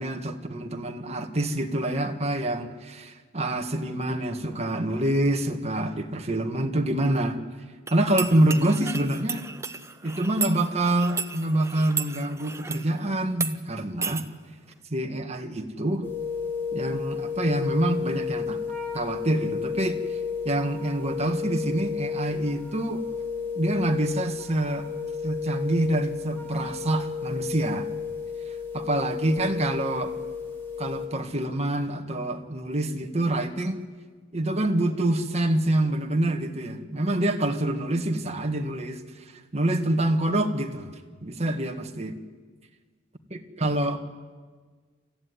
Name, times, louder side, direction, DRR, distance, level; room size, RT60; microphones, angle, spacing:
voice 1, 0.0-7.4 7.9-9.5 10.0-14.3 14.9-16.1 16.7-18.6 18.9-20.0 20.4-23.0 23.6-24.9 25.2-27.9 28.7-30.1 30.8-33.9 34.3-39.2 39.5-42.1 43.3-44.0, right 1 dB, 35° right, 4 dB, 1.7 m, -26 dB
sound 1, 7.9-12.9 13.3-13.5 14.0-14.2, right 5 dB, 15° right, 0.8 m, -34 dB
sound 2, 16.0-31.1, left 6 dB, 10° left, 4.4 m, -32 dB
27.5 x 14.5 x 9.6 m, 1.5 s
head